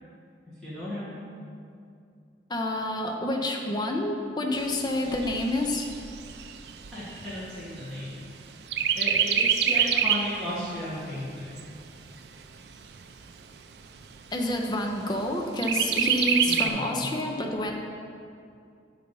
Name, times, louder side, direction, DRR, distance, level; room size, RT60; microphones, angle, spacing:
voice 1, 0.6-1.1 6.9-8.2 8.9-11.5 16.4-17.1, equal, 5° left, -11 dB, 1.5 m, -35 dB
voice 2, 2.5-5.9 14.3-17.7, left 1 dB, 25° left, 1 dB, 0.5 m, -28 dB
Chirp tweet, 4.6-8.3 8.7-10.4 10.8-10.9 11.3-12.3 12.8-12.9 13.3-13.4 13.8-14.4 15.6-16.7, right 8 dB, 65° right, 0.4 m, -26 dB
9.0 x 4.0 x 5.4 m, 2.4 s
head